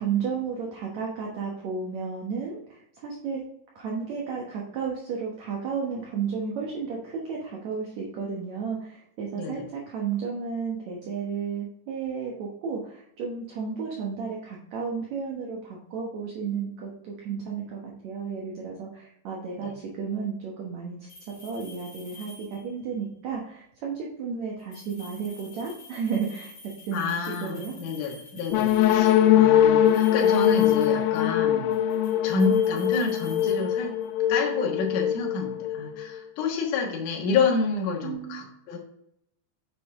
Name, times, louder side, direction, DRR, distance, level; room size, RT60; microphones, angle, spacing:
voice 1, 0.0-3.4 3.7-21.1 21.4-26.5 26.9-27.7 38.0-38.5, right 6 dB, 70° right, -2 dB, 1.8 m, -33 dB
sound 1, 21.1-22.8 24.6-29.3 29.8-31.4 31.7-34.2, left 3 dB, 30° left, 2.5 m, -48 dB
voice 2, 26.9-31.7 32.2-33.9 34.3-38.8, left 4 dB, 60° left, -1 dB, 2.7 m, -28 dB
sound 2, 28.5-36.2, left 11 dB, 85° left, 2.0 m, -22 dB
9.4 x 5.5 x 3.6 m, 0.75 s
omnidirectional pair, 4.7 m